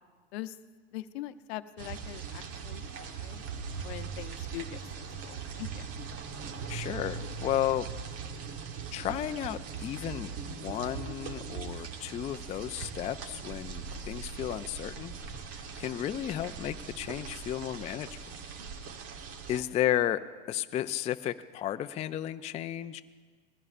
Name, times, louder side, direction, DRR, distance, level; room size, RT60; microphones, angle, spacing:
voice 1, 0.9-3.4 3.8-4.7 5.0-5.8 19.3-19.6, left 15 dB, 65° left, 12 dB, 0.7 m, -42 dB
sound 1, 1.8-19.6, right 6 dB, 45° right, 1.2 m, -40 dB
voice 2, 6.7-7.9 8.9-15.1 15.5-18.3 19.5-20.2 20.5-23.0, left 12 dB, 20° left, 10 dB, 0.3 m, -33 dB
20.0 x 15.5 x 2.5 m, 1.5 s
hypercardioid pair, 95°, 34 cm